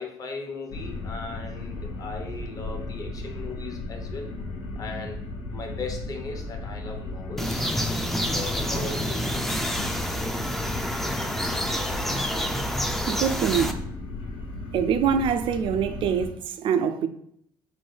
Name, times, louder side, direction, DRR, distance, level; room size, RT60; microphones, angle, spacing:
voice 1, 0.0-4.3 4.8-5.2 5.5-7.8 8.3-9.9, left 3 dB, 35° left, 1.0 m, -38 dB
Bedroom Vent, 0.7-16.3, left 2 dB, 90° left, 0.9 m, -35 dB
sound 1, 7.4-13.7, equal, ahead, 0.4 m, -28 dB
voice 2, 13.1-13.8 14.7-17.1, right 7 dB, 60° right, 0.4 m, -24 dB
4.5 x 2.6 x 4.5 m
cardioid pair, 100°, 10 cm